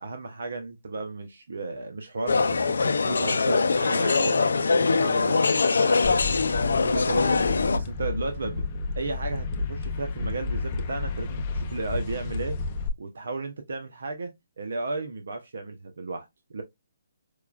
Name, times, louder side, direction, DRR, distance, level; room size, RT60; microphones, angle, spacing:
voice 1, 0.0-6.1 6.7-8.6 9.0-12.6 13.0-16.6, right 3 dB, 75° right, 0.7 m, -34 dB
sound 1, 2.3-7.8, left 4 dB, 85° left, 0.4 m, -23 dB
sound 2, 6.0-12.9, left 3 dB, 30° left, 0.5 m, -31 dB
4.7 x 2.2 x 2.4 m
hypercardioid pair, 160°, 0 cm